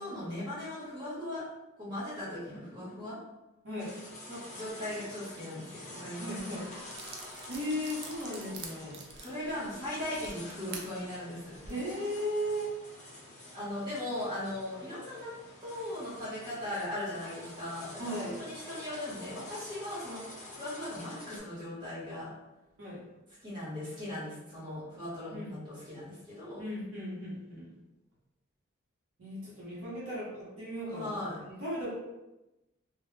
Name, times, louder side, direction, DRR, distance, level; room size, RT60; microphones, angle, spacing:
voice 1, 0.0-1.4 1.8-3.2 4.3-6.5 9.2-11.6 13.5-15.3 15.6-22.3 23.4-26.6 30.9-31.4, left 1 dB, 20° right, -9 dB, 1.0 m, -38 dB
voice 2, 3.6-4.0 6.2-6.7 7.5-9.0 11.7-12.7 18.0-18.4 22.8-23.0 25.3-25.5 26.6-27.7 29.2-31.2 31.5-31.9, equal, 75° right, -6 dB, 0.9 m, -36 dB
sound 1, 3.8-21.4, left 1 dB, 35° left, 0.7 m, -48 dB
sound 2, 6.4-6.5 6.9-10.9 11.5-11.7, right 4 dB, 55° right, 0.4 m, -45 dB
2.2 x 2.1 x 3.1 m, 0.99 s
head